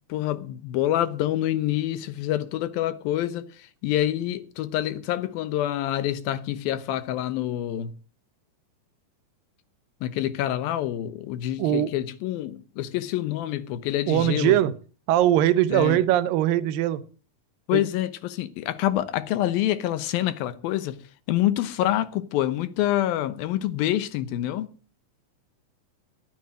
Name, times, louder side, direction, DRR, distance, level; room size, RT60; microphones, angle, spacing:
voice 1, 0.1-3.5 3.8-7.9 10.0-14.6 15.7-16.0 17.7-21.0 21.3-24.7, left 13 dB, 85° left, 2.9 m, -26 dB
voice 2, 14.1-14.7 15.1-17.0 17.7-17.8, right 12 dB, 80° right, 2.5 m, -21 dB
12.0 x 9.3 x 7.6 m
omnidirectional pair, 4.1 m